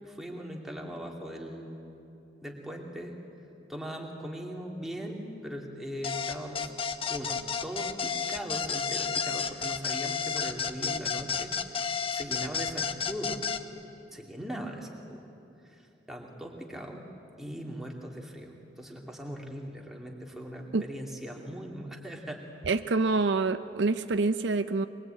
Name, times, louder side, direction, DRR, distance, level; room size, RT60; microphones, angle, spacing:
voice 1, 0.0-1.7 2.4-3.2 3.7-6.7 7.1-13.4 14.1-15.2 15.6-17.0 17.4-22.4, equal, ahead, -1 dB, 2.5 m, -40 dB
sound 1, 6.0-13.6, left 6 dB, 30° left, 0.8 m, -31 dB
voice 2, 22.7-24.9, right 3 dB, 70° right, 11 dB, 0.6 m, -26 dB
23.0 x 22.0 x 8.9 m, 2.8 s
head